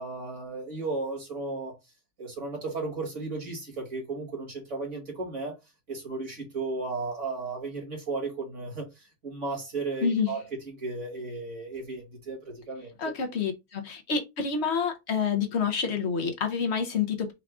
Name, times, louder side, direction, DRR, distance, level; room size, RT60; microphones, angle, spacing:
voice 1, 0.0-1.7 2.2-5.5 5.9-10.4 10.7-13.1, right 3 dB, 50° right, 2.0 m, -34 dB
voice 2, 10.0-10.4 13.0-17.3, left 6 dB, 50° left, 0.9 m, -28 dB
4.6 x 2.4 x 3.5 m
omnidirectional pair, 1.7 m